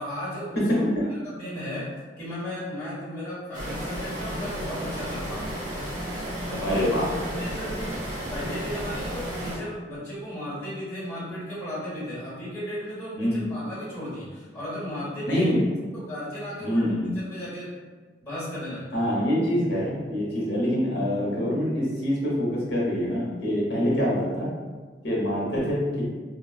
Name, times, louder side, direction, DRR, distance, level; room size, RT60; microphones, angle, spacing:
voice 1, 0.0-0.6 1.1-5.6 6.5-6.8 7.4-8.0 8.3-15.5 15.9-17.8 18.2-19.0 23.7-23.8, equal, 10° left, -10 dB, 1.4 m, -35 dB
voice 2, 0.6-1.1 6.6-7.1 13.2-13.5 15.3-15.6 16.6-17.1 18.9-24.5 25.0-26.0, equal, 70° left, -4 dB, 0.9 m, -25 dB
sound 1, 3.5-9.6, equal, 50° right, 1.1 m, -32 dB
4.2 x 2.2 x 2.3 m, 1.4 s
head